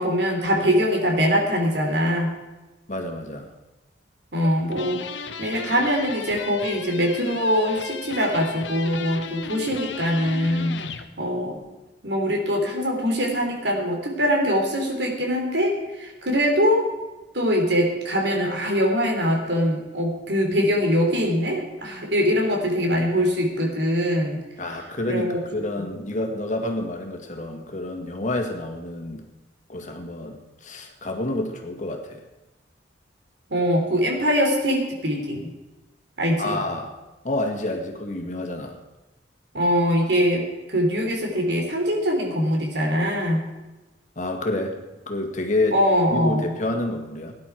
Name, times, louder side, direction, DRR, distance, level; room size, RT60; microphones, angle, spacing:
voice 1, 0.0-2.4 4.3-5.0 5.4-10.8 11.2-11.6 12.0-16.9 17.3-24.4 25.1-25.4 25.8-25.9 33.5-35.5 36.2-36.6 39.5-43.4 45.7-46.5, equal, 70° right, 1 dB, 3.3 m, -23 dB
voice 2, 2.9-3.5 24.6-29.2 29.7-32.2 36.4-36.9 37.2-38.7 44.2-44.8 45.1-45.8 46.1-47.3, left 2 dB, 40° left, 3 dB, 1.9 m, -28 dB
sound 1, 4.7-11.1, left 5 dB, 80° left, 1.0 m, -35 dB
18.0 x 10.5 x 4.6 m, 1.1 s
head